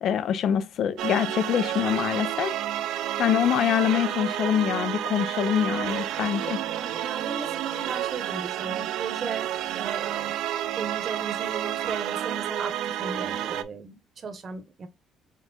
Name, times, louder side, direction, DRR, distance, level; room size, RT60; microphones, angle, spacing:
voice 1, 0.0-2.6 3.2-6.6, left 9 dB, 60° left, 0.6 m, -25 dB
sound 1, 1.0-13.6, right 11 dB, 75° right, 0.4 m, -30 dB
voice 2, 6.3-9.5 9.7-10.3 10.8-14.9, right 5 dB, 40° right, 1.0 m, -36 dB
4.6 x 3.4 x 2.4 m
cardioid pair, 135°, 0 cm